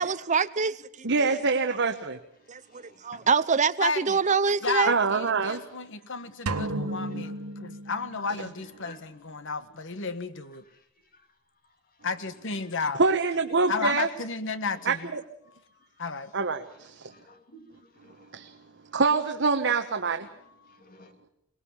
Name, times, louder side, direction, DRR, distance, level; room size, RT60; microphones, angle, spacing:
voice 1, 0.0-1.1 2.5-4.9, right 5 dB, 35° right, 0.8 m, -25 dB
voice 2, 1.0-2.2 4.9-5.6 13.0-14.1 14.9-15.2 16.3-17.1 18.3-18.5 18.9-20.3, right 4 dB, 55° right, 1.2 m, -25 dB
voice 3, 2.7-3.3 7.1-7.3 8.8-9.0 15.4-15.9 17.1-18.3 20.2-21.1, left 1 dB, 40° left, 2.9 m, -52 dB
voice 4, 3.8-4.2 4.6-7.3 7.6-10.6 12.0-13.0 13.7-15.1 16.0-16.3, left 4 dB, 55° left, 1.4 m, -32 dB
sound 1, 6.5-8.5, right 2 dB, 85° right, 1.2 m, -33 dB
23.5 x 20.0 x 7.3 m
head